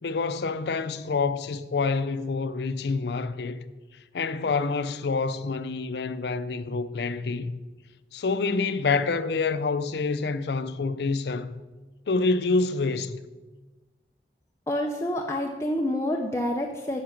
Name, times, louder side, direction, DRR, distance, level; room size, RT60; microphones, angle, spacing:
voice 1, 0.0-3.6 4.1-7.6 8.1-11.5 12.1-13.2, left 4 dB, 70° left, 0.5 m, -27 dB
voice 2, 14.7-17.0, left 1 dB, 15° left, 0.5 m, -28 dB
9.7 x 5.9 x 5.8 m
head